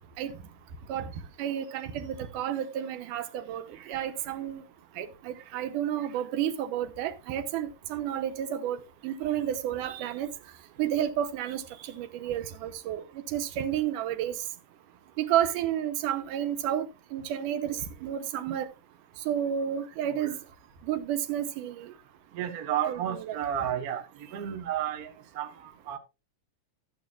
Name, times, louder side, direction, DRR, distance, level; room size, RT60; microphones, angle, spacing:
voice 1, 1.4-4.6 5.0-10.3 10.8-14.4 15.2-16.9 17.1-18.7 19.3-20.4 20.8-21.9 22.9-23.4, right 10 dB, 90° right, 2.5 m, -31 dB
voice 2, 22.3-24.0 24.3-25.1 25.4-25.5 25.9-26.0, right 10 dB, 55° right, 1.0 m, -31 dB
13.5 x 9.0 x 2.4 m
omnidirectional pair, 3.7 m